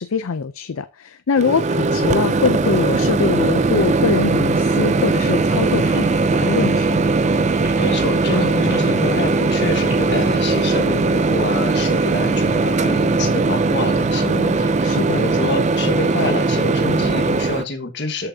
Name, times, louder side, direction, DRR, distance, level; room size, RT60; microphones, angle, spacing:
voice 1, 0.0-7.0 14.8-15.3, left 5 dB, 70° left, 0.5 m, -23 dB
Microwave oven, 1.4-17.6, right 3 dB, 30° right, 0.4 m, -19 dB
sound 1, 5.2-10.6, equal, 10° right, 3.2 m, -40 dB
voice 2, 7.8-18.3, left 2 dB, 50° left, 1.5 m, -26 dB
13.5 x 5.8 x 2.7 m
head